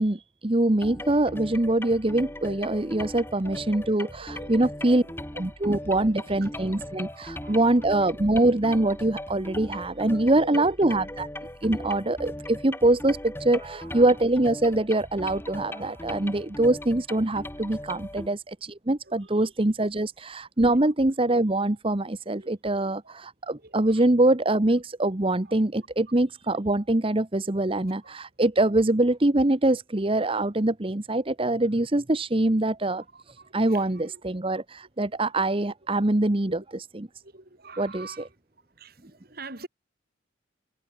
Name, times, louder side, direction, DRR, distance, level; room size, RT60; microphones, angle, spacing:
voice 1, 0.0-5.0 5.3-11.3 11.6-37.1 37.8-38.1, right 2 dB, 30° right, 1.0 m, -24 dB
sound 1, 0.8-18.3, left 1 dB, 10° left, 5.0 m, -39 dB
voice 2, 3.4-5.1 5.8-6.5 6.9-8.1 10.1-10.8 11.8-11.9 13.8-14.1 18.1-18.2 19.0-19.5 20.7-20.9 22.4-22.9 23.6-24.1 25.4-25.6 26.5-26.6 26.9-27.1 28.0-28.1 28.6-28.8 31.6-31.7 32.4-32.5 32.8-34.2 37.2-38.3 38.7-39.7, right 2 dB, 50° right, 4.4 m, -46 dB
head